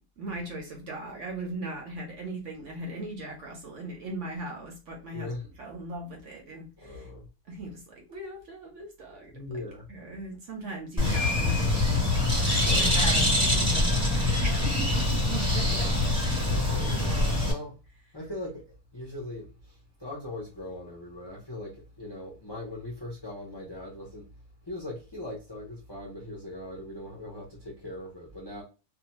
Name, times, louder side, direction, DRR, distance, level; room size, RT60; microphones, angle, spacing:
voice 1, 0.2-5.3 5.6-7.1 7.5-9.6 9.9-12.2 12.8-14.1 14.4-15.9, right 2 dB, 60° right, 0.9 m, -38 dB
voice 2, 5.1-5.5 6.8-7.3 9.3-9.9 12.5-13.0 14.7-14.8 15.7-16.0 16.5-17.7 18.1-24.3 24.6-28.6, left 1 dB, 30° left, 0.4 m, -40 dB
Bird, 11.0-17.5, left 2 dB, 5° right, 0.9 m, -24 dB
2.6 x 2.2 x 2.9 m
omnidirectional pair, 1.6 m